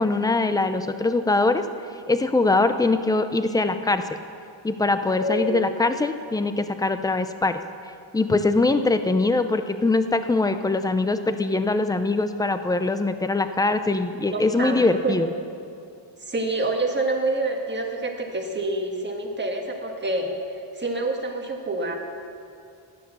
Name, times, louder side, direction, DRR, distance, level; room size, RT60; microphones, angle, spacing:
voice 1, 0.0-1.6 2.1-4.0 4.6-7.6 8.1-15.3, left 3 dB, 10° left, 9 dB, 0.5 m, -22 dB
voice 2, 5.2-5.6 14.3-15.2 16.2-21.9, right 2 dB, 20° right, 2 dB, 1.5 m, -27 dB
14.5 x 10.5 x 6.9 m, 2.5 s
wide cardioid pair, 155°, 47 cm